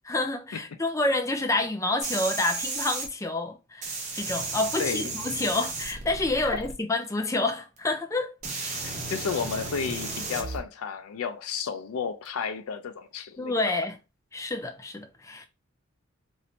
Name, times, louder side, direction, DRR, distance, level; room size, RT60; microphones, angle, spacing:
voice 1, 0.0-8.3 13.4-14.0 14.3-15.5, left 2 dB, 15° left, 0.4 m, -28 dB
sound 1, 2.0-3.1 3.8-6.7 7.8-7.9 8.4-10.6 12.3-12.4, right 3 dB, 35° right, 0.7 m, -34 dB
voice 2, 4.8-5.1 6.4-6.6 8.7-13.6, left 6 dB, 85° left, 0.4 m, -32 dB
3.1 x 2.6 x 2.8 m
head